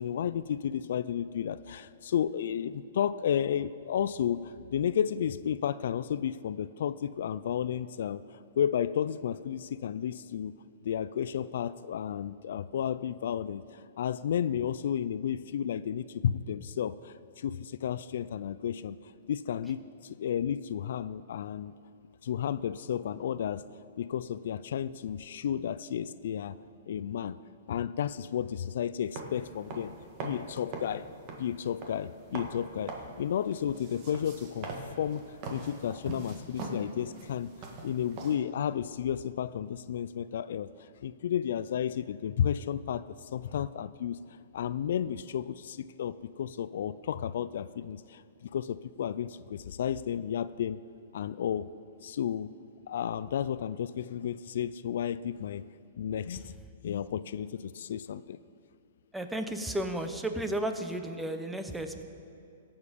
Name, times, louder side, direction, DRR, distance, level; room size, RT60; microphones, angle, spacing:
voice 1, 0.0-10.6 10.8-19.0 19.3-21.8 22.2-23.6 24.0-26.6 26.9-27.4 27.7-30.0 30.2-31.1 31.4-37.5 37.8-44.2 44.5-50.8 51.1-51.7 52.0-52.5 52.9-55.6 56.0-56.6 56.8-58.4, left 9 dB, 65° left, 16 dB, 0.3 m, -32 dB
sound 1, 29.1-38.4, right 3 dB, 35° right, 1.7 m, -42 dB
voice 2, 59.1-62.0, right 1 dB, 5° right, 7 dB, 0.7 m, -33 dB
17.0 x 7.2 x 5.1 m, 2.6 s
hypercardioid pair, 150°, 0 cm